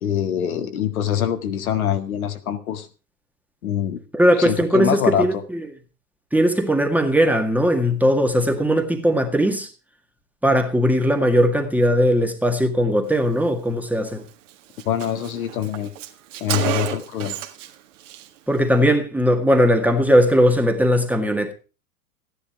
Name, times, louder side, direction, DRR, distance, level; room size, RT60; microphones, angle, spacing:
voice 1, 0.0-2.9 3.6-4.0 4.4-5.4 14.9-15.9 16.4-17.4, left 10 dB, 65° left, 1.8 m, -24 dB
voice 2, 4.1-5.6 6.3-9.7 10.4-14.2 18.5-21.5, equal, 5° right, 1.8 m, -19 dB
Car, 14.1-14.2 14.5-14.6 14.8-17.7 18.0-18.3, right 11 dB, 50° right, 1.8 m, -30 dB
15.0 x 10.5 x 4.6 m
figure-of-eight pair, 100°, 47 cm